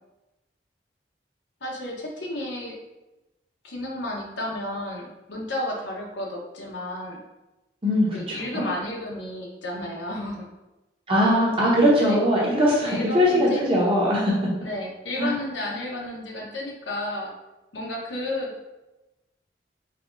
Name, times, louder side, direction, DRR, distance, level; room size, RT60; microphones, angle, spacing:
voice 1, 1.6-2.7 3.6-7.2 8.1-10.4 12.0-12.2 12.8-13.6 14.6-17.3 17.7-18.5, left 1 dB, 85° left, -1 dB, 1.0 m, -32 dB
voice 2, 7.8-8.7 11.1-14.3 15.2-15.3, equal, 30° right, -5 dB, 1.0 m, -21 dB
4.6 x 2.9 x 2.5 m, 1.0 s
head